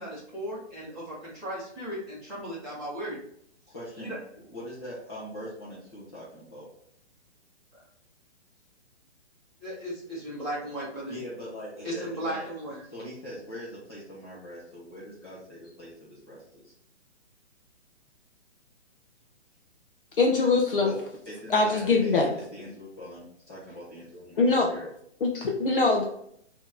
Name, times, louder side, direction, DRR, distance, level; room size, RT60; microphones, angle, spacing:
voice 1, 0.0-3.2 4.0-4.2 9.6-11.2 11.8-12.8, right 1 dB, ahead, -14 dB, 1.5 m, -36 dB
voice 2, 3.7-4.2 4.5-6.7 11.1-12.5 12.9-16.7 20.8-21.0 21.3-24.9, equal, 25° left, -9 dB, 1.0 m, -42 dB
voice 3, 20.2-20.9 21.5-22.4 24.4-24.7 25.2-26.0, left 3 dB, 50° left, 0 dB, 0.8 m, -22 dB
4.3 x 2.9 x 3.8 m, 0.68 s
hypercardioid pair, 175°, 34 cm